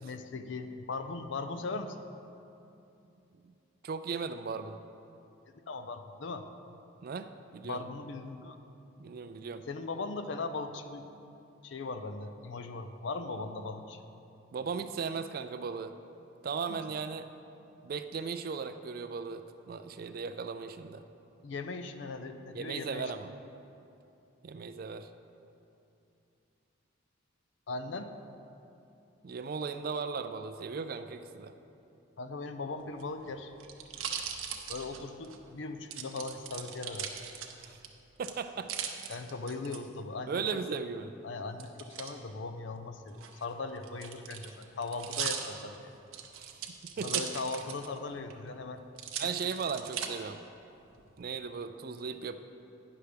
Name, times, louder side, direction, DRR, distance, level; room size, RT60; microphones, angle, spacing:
voice 1, 0.0-2.0 5.7-6.5 7.6-8.6 9.7-11.1 11.6-14.0 16.7-16.8 21.4-23.1 27.7-28.1 32.2-33.5 34.7-37.1 39.1-40.5 41.2-45.9 47.0-48.8 49.1-49.3, left 3 dB, 60° left, 8 dB, 0.5 m, -39 dB
voice 2, 3.8-4.8 7.0-7.8 9.0-9.6 14.5-15.9 16.4-17.3 17.8-21.0 22.5-23.3 24.4-25.1 29.2-31.5 37.6-37.8 38.2-38.7 40.3-41.1 46.3-47.3 49.2-50.4 51.2-52.4, right 5 dB, 45° right, 9 dB, 0.3 m, -37 dB
sound 1, 32.9-35.4 35.9-37.9 38.2-39.8 41.6-42.1 43.1-48.0 48.3-48.4 49.0-50.1 50.7-51.2, right 8 dB, 85° right, 0.7 m, -39 dB
9.4 x 5.8 x 5.0 m, 2.8 s
head